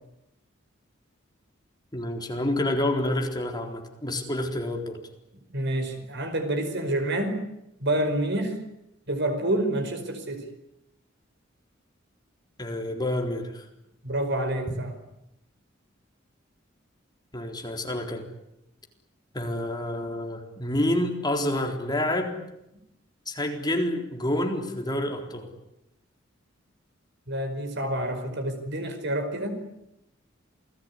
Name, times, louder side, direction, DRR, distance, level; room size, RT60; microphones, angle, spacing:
voice 1, 1.9-5.0 12.6-13.6 17.3-18.2 19.3-22.4 23.3-25.5, left 1 dB, 20° left, 3 dB, 3.9 m, -28 dB
voice 2, 5.5-7.4 7.8-8.6 9.1-10.4 14.0-14.9 27.3-29.6, right 1 dB, 60° right, 7 dB, 5.1 m, -28 dB
28.5 x 19.5 x 9.9 m, 0.83 s
head